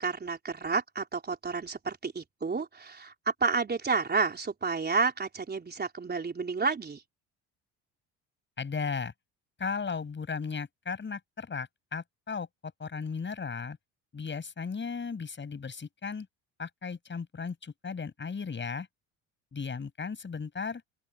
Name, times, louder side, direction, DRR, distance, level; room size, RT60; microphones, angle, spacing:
voice 1, 0.0-7.0, right 4 dB, 25° right, 4.1 m, -30 dB
voice 2, 8.6-9.1 9.6-13.8 14.1-16.3 16.6-18.9 19.5-20.8, left 5 dB, 30° left, 6.6 m, -36 dB
open air
hypercardioid pair, 70°, 36 cm